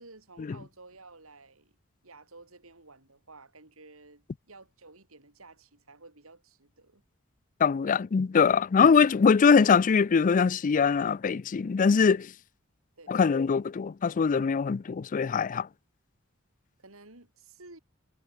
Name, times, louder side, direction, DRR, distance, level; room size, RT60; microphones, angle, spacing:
voice 1, 0.0-1.8 2.0-7.0 13.0-13.3 16.8-17.8, right 3 dB, 85° right, 5.4 m, -53 dB
voice 2, 7.6-12.3 13.1-15.7, left 5 dB, 40° left, 0.4 m, -22 dB
head